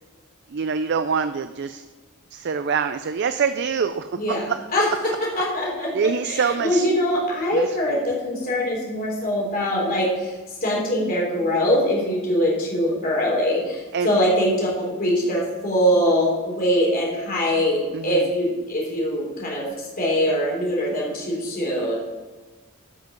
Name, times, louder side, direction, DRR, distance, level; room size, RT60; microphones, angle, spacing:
voice 1, 0.5-1.8 2.3-4.4 5.3-5.4 5.9-6.9 7.5-8.0 13.9-14.1 17.9-18.2, right 6 dB, 50° right, 10 dB, 0.4 m, -25 dB
voice 2, 4.1-4.5 4.7-4.9 5.4-10.3 10.6-21.9, equal, 40° left, -4 dB, 3.7 m, -23 dB
12.5 x 5.9 x 5.2 m, 1.3 s
head